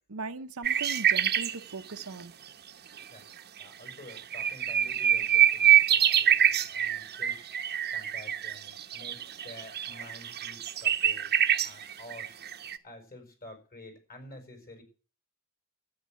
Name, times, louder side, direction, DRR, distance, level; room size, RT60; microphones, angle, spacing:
voice 1, 0.1-2.3, right 4 dB, 80° right, 0.9 m, -39 dB
sound 1, 0.6-1.6 3.0-3.1 3.6-3.7 3.9-12.8, right 10 dB, 50° right, 0.9 m, -25 dB
voice 2, 3.6-11.3 11.6-12.4 12.8-14.8, left 1 dB, 45° left, 5.3 m, -50 dB
13.0 x 8.8 x 7.7 m
head